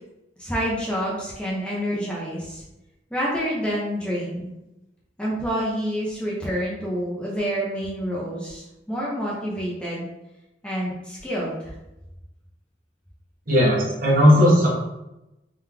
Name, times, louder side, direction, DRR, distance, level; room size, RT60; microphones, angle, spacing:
voice 1, 0.4-2.6 3.1-4.5 5.2-10.0 10.6-11.6, equal, 5° left, -5 dB, 0.7 m, -28 dB
voice 2, 13.5-14.7, equal, 50° right, -5 dB, 1.3 m, -16 dB
3.7 x 3.2 x 3.4 m, 0.94 s
head